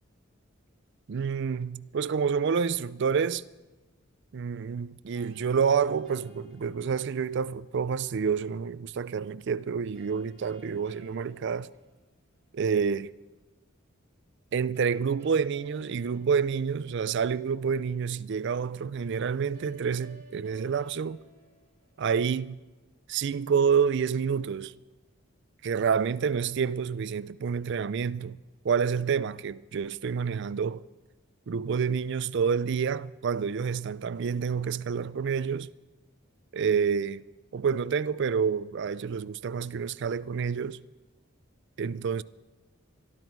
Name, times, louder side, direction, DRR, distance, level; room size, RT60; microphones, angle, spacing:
voice 1, 1.1-3.4 4.3-11.7 12.6-13.1 14.5-21.2 22.0-22.6 23.1-24.7 25.6-30.8 31.5-35.7 36.5-37.2 37.5-40.8 41.8-42.2, right 6 dB, 60° right, 0.4 m, -28 dB
sound 1, 5.1-7.3 9.9-12.4 14.7-17.3 19.5-22.4, right 2 dB, 35° right, 6.0 m, -56 dB
23.0 x 12.5 x 4.6 m
head